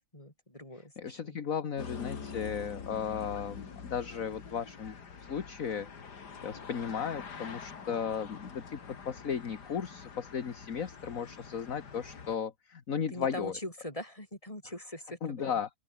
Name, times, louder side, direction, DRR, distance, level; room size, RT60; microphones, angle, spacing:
voice 1, 0.1-1.4 13.1-15.5, left 1 dB, 20° left, 6.3 m, -42 dB
voice 2, 0.7-5.0 5.3-13.5 15.2-15.7, left 7 dB, 55° left, 1.8 m, -35 dB
sound 1, 1.8-12.4, left 6 dB, 70° left, 2.7 m, -45 dB
open air
omnidirectional pair, 1.8 m